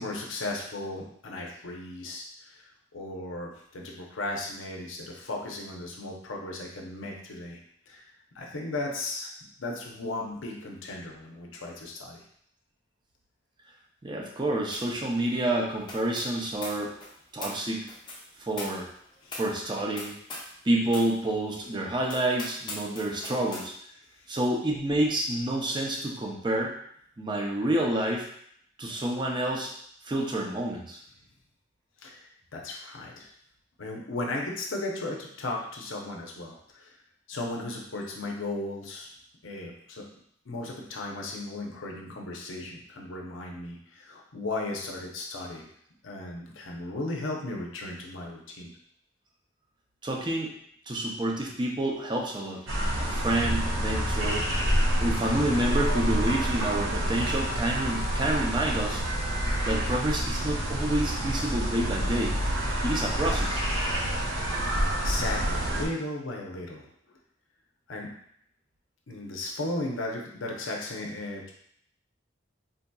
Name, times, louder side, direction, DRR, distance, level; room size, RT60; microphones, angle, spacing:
voice 1, 0.0-2.7 2.9-7.6 7.9-8.0 8.3-9.3 9.6-12.2 19.2-19.3 32.0-32.2 32.5-33.3 33.8-37.0 37.3-39.1 39.4-40.1 40.5-45.7 46.0-48.7 64.7-66.9 67.9-68.1 69.1-71.5, left 2 dB, 85° left, 0 dB, 0.7 m, -36 dB
voice 2, 14.0-16.9 17.3-17.9 18.4-18.9 19.3-20.1 20.6-23.7 24.3-26.7 27.2-28.3 28.8-29.7 30.0-31.0 50.0-50.5 50.9-52.6 53.0-54.5 55.0-59.0 59.6-62.3 62.8-63.6, right 1 dB, 25° right, -1 dB, 0.5 m, -28 dB
sound 1, 14.7-15.0 15.2-20.6 20.9-21.2 21.6-21.7 22.1-23.7, left 2 dB, 25° left, 0.5 m, -42 dB
sound 2, 52.7-65.9, equal, 90° right, 0.7 m, -28 dB
3.8 x 2.7 x 2.2 m, 0.67 s
head